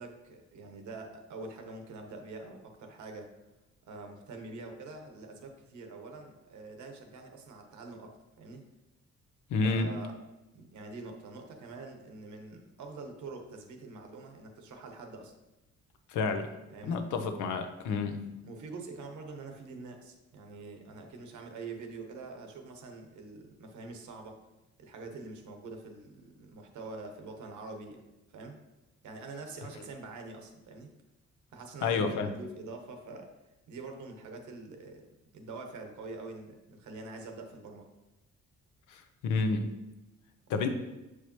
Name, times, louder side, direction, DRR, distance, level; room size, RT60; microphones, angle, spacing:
voice 1, 0.0-3.3 3.9-8.7 9.6-10.2 10.5-15.3 16.7-17.0 18.4-24.4 24.8-28.6 29.0-30.9 31.5-33.3 33.7-35.1 35.3-37.9 40.5-40.7, right 3 dB, 75° right, 4 dB, 1.1 m, -45 dB
voice 2, 9.5-9.9 16.1-16.5 16.9-18.3 31.8-32.3 38.9-39.7 40.5-40.7, left 4 dB, 80° left, 7 dB, 0.8 m, -30 dB
6.7 x 4.7 x 3.0 m, 1.0 s
cardioid pair, 90°, 30 cm